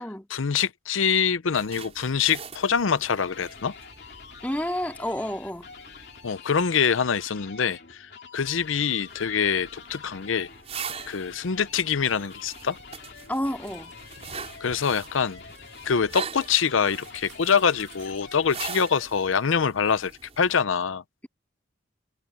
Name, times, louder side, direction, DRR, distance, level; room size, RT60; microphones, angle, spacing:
voice 1, 0.3-3.7 6.2-10.5 11.1-12.8 14.6-15.4 15.8-21.0, left 6 dB, 90° left, 0.6 m, -25 dB
sound 1, 1.5-6.3 8.4-20.6, right 6 dB, 30° right, 5.9 m, -43 dB
sound 2, 2.8-19.3, left 5 dB, 55° left, 3.0 m, -47 dB
voice 2, 4.4-5.7 13.3-13.9, equal, 10° left, 2.3 m, -30 dB
sound 3, 11.9-19.4, right 4 dB, 85° right, 6.4 m, -54 dB
head